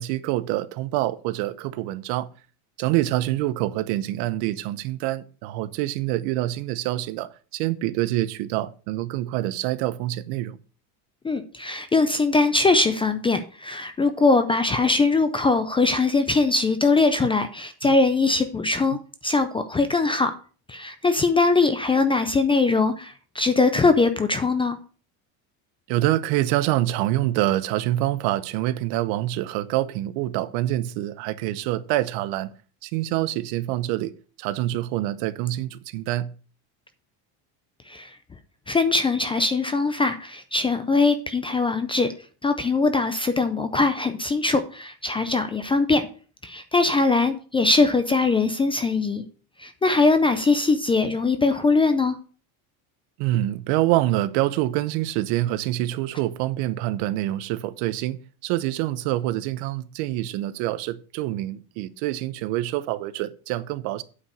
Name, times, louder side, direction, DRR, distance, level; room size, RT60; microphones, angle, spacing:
voice 1, 0.0-2.3 2.8-10.6 17.8-17.9 25.9-32.5 32.8-34.1 34.4-36.3 53.2-64.0, right 15 dB, 75° right, 0.9 m, -26 dB
voice 2, 11.2-19.0 19.2-20.4 20.7-24.8 37.9-38.1 38.7-42.1 42.4-46.1 46.4-49.2 49.6-52.2, left 3 dB, 15° left, 0.3 m, -21 dB
8.6 x 4.8 x 6.5 m
cardioid pair, 145°, 46 cm